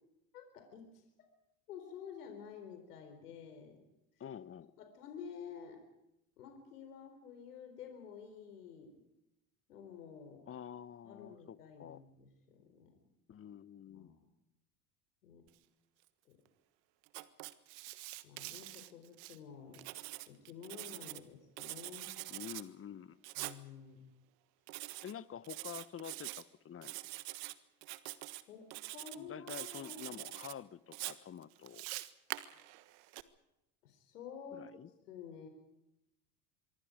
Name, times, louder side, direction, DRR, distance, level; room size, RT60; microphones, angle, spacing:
voice 1, 0.3-1.3 1.7-3.8 4.2-4.3 4.8-5.8 6.4-9.0 9.7-10.5 11.0-12.9 13.9-14.2 15.2-15.5 16.3-16.4 18.2-19.8 20.3-22.1 23.4-24.1 28.5-30.2 33.8-34.7 35.1-35.5, left 7 dB, 85° left, 6 dB, 4.1 m, -51 dB
voice 2, 4.2-4.7 10.5-12.0 13.3-14.1 22.3-23.2 25.0-26.9 29.1-31.9 34.5-34.9, left 9 dB, 30° left, 17 dB, 1.1 m, -48 dB
Writing, 17.1-19.4 19.7-21.2 21.6-22.6 23.2-23.6 24.7-25.1 25.4-26.4 26.8-27.5 27.8-28.4 28.7-29.2 29.5-30.5 30.9-33.2, right 20 dB, 65° right, 1.5 m, -45 dB
25.0 x 24.0 x 5.1 m, 0.89 s
hypercardioid pair, 75°, 45 cm